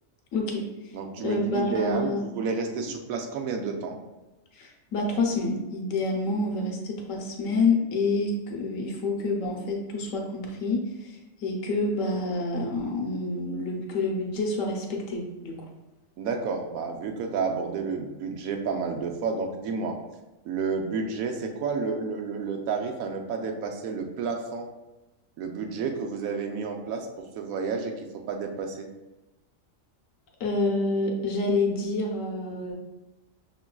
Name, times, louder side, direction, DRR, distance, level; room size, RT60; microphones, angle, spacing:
voice 1, 0.3-0.6 1.2-2.2 4.5-15.6 30.4-32.8, left 2 dB, 70° left, 0 dB, 1.1 m, -28 dB
voice 2, 0.9-4.0 16.2-20.0 20.4-24.7 25.4-27.1 27.4-28.9, right 5 dB, 85° right, 3 dB, 1.0 m, -30 dB
5.8 x 3.0 x 2.2 m, 1.0 s
omnidirectional pair, 1.4 m